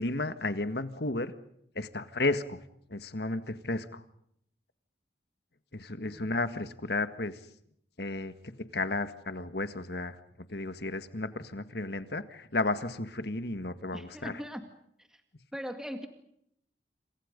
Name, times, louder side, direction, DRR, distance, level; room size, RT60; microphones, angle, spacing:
voice 1, 0.0-1.3 1.8-2.6 2.9-4.0 5.7-7.4 8.0-8.3 8.7-10.2 10.5-14.3, left 2 dB, 60° left, 11 dB, 1.8 m, -33 dB
voice 2, 6.0-6.4 13.9-14.7 15.1-15.2 15.5-16.1, equal, 5° right, 6 dB, 2.1 m, -40 dB
28.5 x 28.0 x 5.3 m, 0.71 s
head